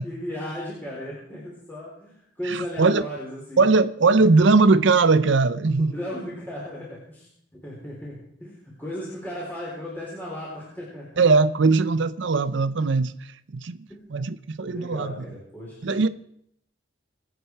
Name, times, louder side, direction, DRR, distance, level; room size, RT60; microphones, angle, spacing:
voice 1, 0.0-3.7 4.2-4.3 5.8-7.3 7.6-11.2 13.9-14.0 14.7-15.8, equal, 10° left, 4.1 m, -36 dB
voice 2, 2.4-3.0 3.6-5.9 11.2-13.8 14.1-15.1 15.8-16.1, right 3 dB, 70° right, 0.6 m, -20 dB
24.5 x 8.7 x 4.7 m
head